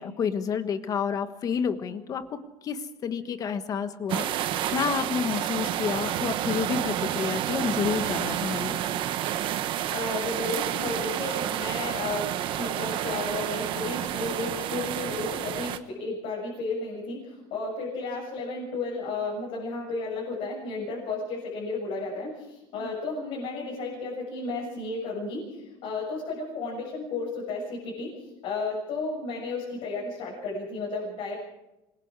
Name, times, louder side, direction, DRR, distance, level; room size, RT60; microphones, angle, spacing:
voice 1, 0.0-8.8 22.8-23.0, left 7 dB, 30° left, 10 dB, 1.4 m, -30 dB
sound 1, 4.1-15.8, right 11 dB, 50° right, 1.2 m, -30 dB
voice 2, 9.9-12.3 12.6-28.2 28.4-31.3, left 3 dB, 55° left, -4 dB, 7.1 m, -33 dB
26.0 x 21.5 x 4.8 m, 0.97 s
cardioid pair, 150°, 11 cm